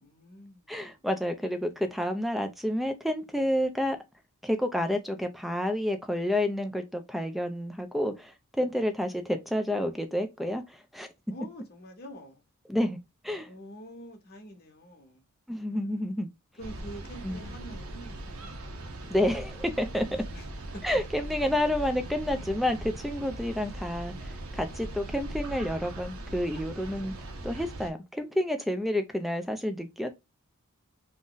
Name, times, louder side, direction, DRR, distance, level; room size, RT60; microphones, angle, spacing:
voice 1, 0.0-1.1 8.6-8.8 11.3-12.4 13.4-15.2 15.5-16.1 16.6-18.5 20.3-20.8, equal, 45° left, 0.8 m, -47 dB
voice 2, 0.7-4.0 4.4-8.3 8.6-11.1 12.7-13.0 13.2-13.5 15.5-16.3 17.2-17.5 19.1-20.0 20.8-27.1 27.4-30.1, left 1 dB, ahead, 0.3 m, -29 dB
sound 1, 16.6-27.9, right 1 dB, 70° right, 0.6 m, -40 dB
2.6 x 2.1 x 3.7 m
head